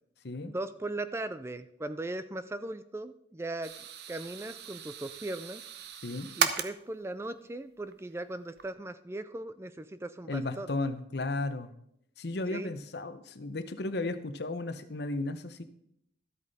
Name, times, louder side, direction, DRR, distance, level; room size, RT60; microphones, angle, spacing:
voice 1, 0.4-3.7 4.1-5.6 6.4-10.7 12.5-12.7, right 2 dB, 15° right, 12 dB, 0.3 m, -38 dB
sound 1, 3.6-6.7 7.9-8.1 8.6-8.7, right 7 dB, 60° right, 0.8 m, -35 dB
voice 2, 10.3-11.7 12.2-15.6, left 2 dB, 60° left, 10 dB, 0.8 m, -34 dB
12.5 x 8.3 x 4.1 m, 0.75 s
head